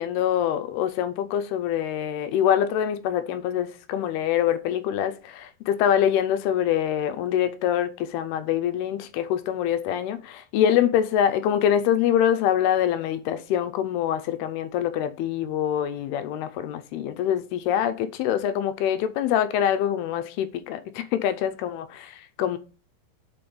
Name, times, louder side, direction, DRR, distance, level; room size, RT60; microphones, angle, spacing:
voice 1, 0.0-22.6, left 10 dB, 80° left, 2.6 m, -25 dB
5.9 x 5.4 x 6.9 m
omnidirectional pair, 4.6 m